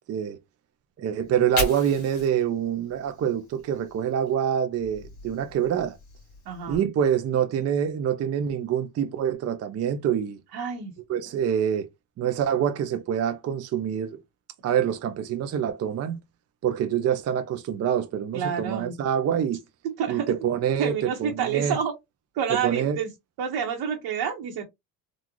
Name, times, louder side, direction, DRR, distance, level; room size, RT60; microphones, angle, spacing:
voice 1, 1.0-6.0 6.7-10.4 11.1-11.9 12.2-14.2 14.6-16.2 16.6-19.6 20.1-21.8 22.5-23.0, right 9 dB, 40° right, 0.5 m, -26 dB
Fire, 1.2-4.3 4.7-6.8, left 3 dB, 40° left, 1.8 m, -37 dB
voice 2, 6.5-6.9 10.5-10.9 18.3-19.0 20.0-20.3 20.8-21.9 22.3-23.1 23.4-24.6, right 7 dB, 65° right, 1.1 m, -28 dB
3.8 x 2.4 x 2.9 m
cardioid pair, 115°, 42 cm